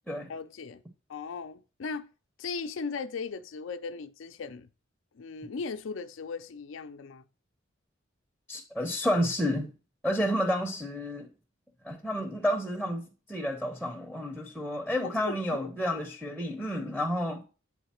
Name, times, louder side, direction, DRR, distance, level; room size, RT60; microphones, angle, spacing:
voice 1, 0.3-0.8 1.1-2.1 2.4-4.7 5.2-7.2 15.0-15.7, left 4 dB, 75° left, 0.4 m, -37 dB
voice 2, 8.5-9.7 10.0-11.3 11.8-17.4, equal, ahead, 0.7 m, -30 dB
8.3 x 3.9 x 4.3 m
head